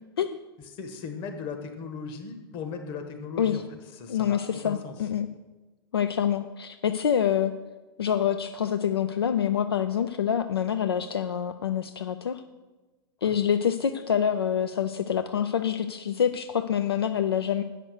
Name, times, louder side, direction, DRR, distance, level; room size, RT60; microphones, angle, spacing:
voice 1, 0.7-3.6 4.0-4.4 4.6-4.9 13.2-13.4, left 5 dB, 40° left, 6 dB, 1.3 m, -37 dB
voice 2, 4.1-5.3 5.9-7.5 8.0-12.4 13.2-17.6, left 8 dB, 75° left, 9 dB, 0.4 m, -26 dB
7.9 x 5.8 x 6.4 m, 1.2 s
figure-of-eight pair, 95°, 13 cm